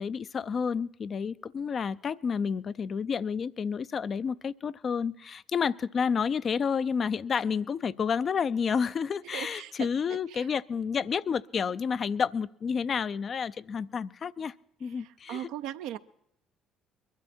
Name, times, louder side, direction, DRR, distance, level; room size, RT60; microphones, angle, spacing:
voice 1, 0.0-14.5 14.8-15.5, left 6 dB, 45° left, 15 dB, 0.5 m, -30 dB
voice 2, 9.2-10.5 15.0-16.0, right 12 dB, 75° right, 10 dB, 0.6 m, -39 dB
22.0 x 12.0 x 4.3 m, 0.77 s
hypercardioid pair, 60°, 0 cm